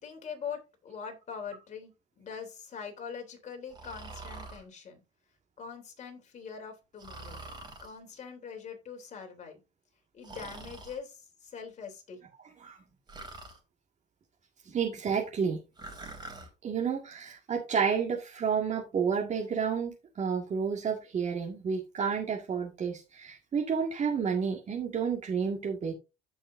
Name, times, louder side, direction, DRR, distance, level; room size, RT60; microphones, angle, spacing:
voice 1, 0.0-5.0 5.6-7.4 7.8-9.6 10.1-12.2, left 6 dB, 45° left, 3 dB, 3.4 m, -43 dB
Breathing, 3.7-4.6 7.0-7.9 10.2-11.0 13.1-13.6 15.8-16.5, right 2 dB, 25° right, 3.3 m, -44 dB
voice 2, 14.7-15.6 16.6-25.9, right 6 dB, 45° right, -1 dB, 2.0 m, -30 dB
15.0 x 5.6 x 2.7 m, 0.27 s
cardioid pair, 110°, 17 cm